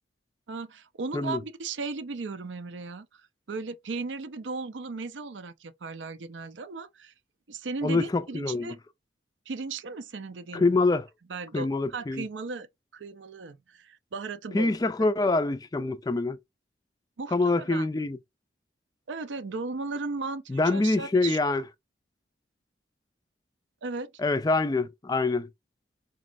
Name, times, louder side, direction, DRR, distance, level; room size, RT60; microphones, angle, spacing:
voice 1, 0.5-3.2 3.5-7.1 7.5-8.8 9.5-10.7 11.3-12.7 12.9-15.1 17.2-17.9 19.1-21.4 23.8-24.1, right 4 dB, 85° right, 0.5 m, -36 dB
voice 2, 7.8-8.8 10.5-11.1 11.5-12.2 14.5-16.4 17.3-18.2 20.5-21.6 24.2-25.5, left 3 dB, 20° left, 0.3 m, -25 dB
4.0 x 3.1 x 2.5 m
head